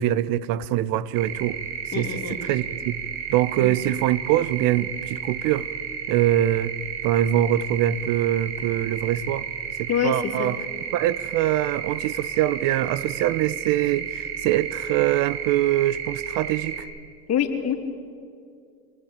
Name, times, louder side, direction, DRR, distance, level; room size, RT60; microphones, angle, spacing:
voice 1, 0.0-1.6 2.0-3.0 3.3-5.7 6.1-6.7 7.0-9.5 9.8-10.6 10.9-16.9, right 13 dB, 45° right, 1.0 m, -23 dB
sound 1, 1.1-16.8, right 8 dB, 75° right, 5.5 m, -33 dB
voice 2, 1.9-2.4 3.6-3.7 9.9-10.5 17.3-17.7, left 8 dB, 30° left, 3.1 m, -25 dB
25.0 x 19.0 x 8.9 m
hypercardioid pair, 105°, 47 cm